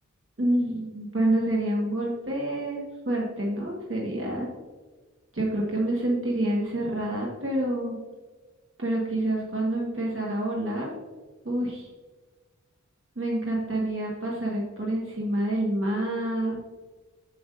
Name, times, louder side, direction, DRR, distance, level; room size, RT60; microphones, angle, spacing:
voice 1, 0.4-4.5 5.3-7.9 8.8-10.9 11.4-11.9 13.2-16.6, right 1 dB, 45° right, -3 dB, 1.4 m, -27 dB
7.8 x 7.0 x 2.5 m, 1.3 s
wide cardioid pair, 45°, 31 cm